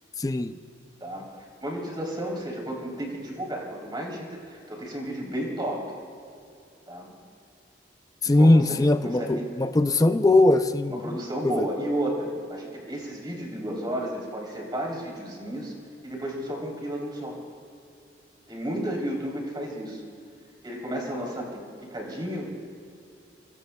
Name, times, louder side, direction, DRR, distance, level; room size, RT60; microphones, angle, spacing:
voice 1, 0.2-0.6 8.2-11.2 11.4-11.6, left 2 dB, 20° left, 9 dB, 0.4 m, -20 dB
voice 2, 1.0-5.8 6.9-7.1 8.2-9.5 10.9-15.7 16.0-17.4 18.5-20.0 20.6-22.5, right 1 dB, 25° right, -2 dB, 3.5 m, -33 dB
27.0 x 22.0 x 2.3 m, 2.5 s
head